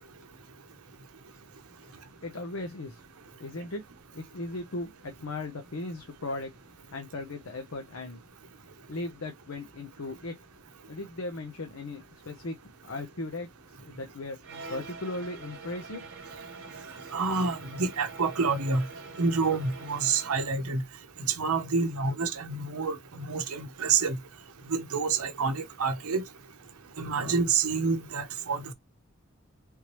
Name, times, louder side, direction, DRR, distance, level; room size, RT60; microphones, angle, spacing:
voice 1, 1.8-3.0 3.4-3.8 4.1-6.5 6.9-8.2 8.9-10.4 10.9-12.6 12.9-14.4 14.7-16.1, left 2 dB, 70° left, 0.8 m, -37 dB
sound 1, 14.4-20.6, right 4 dB, 55° right, 1.1 m, -45 dB
voice 2, 17.1-18.8 19.2-20.8 21.3-24.2 24.7-26.2 27.0-28.7, right 4 dB, 85° right, 0.7 m, -28 dB
3.5 x 3.0 x 3.0 m
head